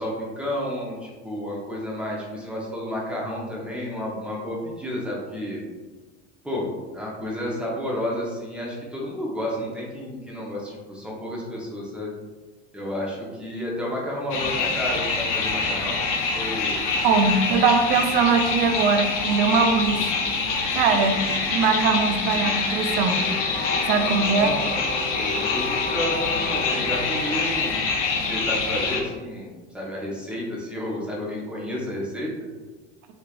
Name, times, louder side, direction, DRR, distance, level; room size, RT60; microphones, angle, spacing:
voice 1, 0.0-5.6 6.4-6.7 6.9-12.1 12.7-16.0 16.3-16.9 24.1-27.8 28.2-32.3, equal, 5° right, -4 dB, 0.9 m, -31 dB
sound 1, 14.3-29.0, left 4 dB, 85° left, 0.6 m, -25 dB
voice 2, 17.0-20.0 20.7-21.2 21.5-23.2 23.9-24.6, right 5 dB, 60° right, 6 dB, 0.5 m, -21 dB
3.3 x 3.0 x 2.4 m, 1.3 s
hypercardioid pair, 90°, 35 cm